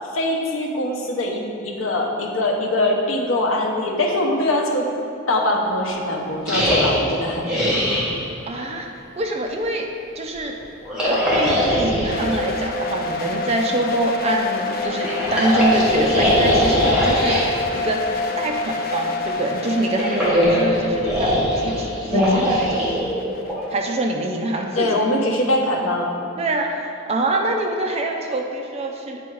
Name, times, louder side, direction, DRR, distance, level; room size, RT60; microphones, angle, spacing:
voice 1, 0.1-4.9 5.3-7.7 24.8-26.1, left 1 dB, 70° left, 1 dB, 0.8 m, -22 dB
sound 1, 6.5-8.1 10.8-12.2 14.8-17.5 19.7-23.6, left 1 dB, 5° right, 1.3 m, -21 dB
voice 2, 8.5-8.9 9.2-9.8 10.2-10.6 11.0-18.0 18.4-22.9 23.7-24.9 26.4-29.2, right 1 dB, 30° right, 1 dB, 0.5 m, -25 dB
sound 2, 12.1-24.9, left 3 dB, 45° left, 0.5 m, -28 dB
8.5 x 3.5 x 4.6 m, 2.7 s
head